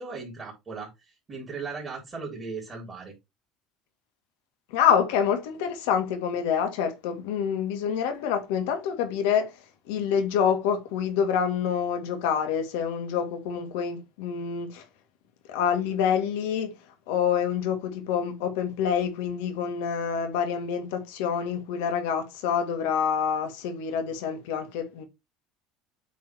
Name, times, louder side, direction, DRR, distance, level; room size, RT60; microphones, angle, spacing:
voice 1, 0.0-3.1, right 4 dB, 20° right, 3.3 m, -37 dB
voice 2, 4.7-9.5 9.9-14.8 15.5-16.7 17.1-25.1, left 7 dB, 90° left, 2.0 m, -27 dB
8.3 x 3.8 x 4.6 m
cardioid pair, 140°, 0 cm